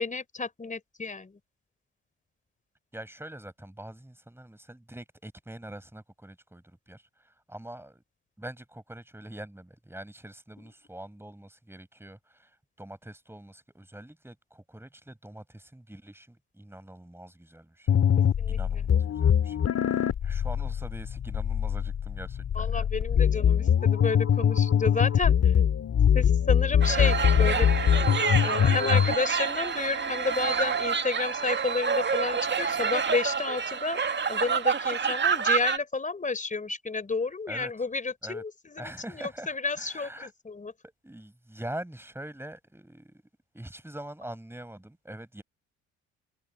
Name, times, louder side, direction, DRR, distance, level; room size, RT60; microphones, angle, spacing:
voice 1, 0.0-1.4 10.6-10.7 18.2-18.6 22.6-25.5 26.1-27.7 28.4-34.0 34.3-40.7, left 4 dB, 20° left, 3.9 m, -31 dB
voice 2, 2.9-8.0 8.4-18.0 18.5-19.6 19.8-22.9 37.5-37.7 38.2-38.4 38.8-40.3 40.8-43.2 43.5-45.4, right 1 dB, 5° right, 7.0 m, -44 dB
sound 1, 17.9-29.1, left 8 dB, 40° left, 2.8 m, -23 dB
sound 2, 26.8-35.8, right 6 dB, 30° right, 2.2 m, -28 dB
figure-of-eight pair, 50°, 37 cm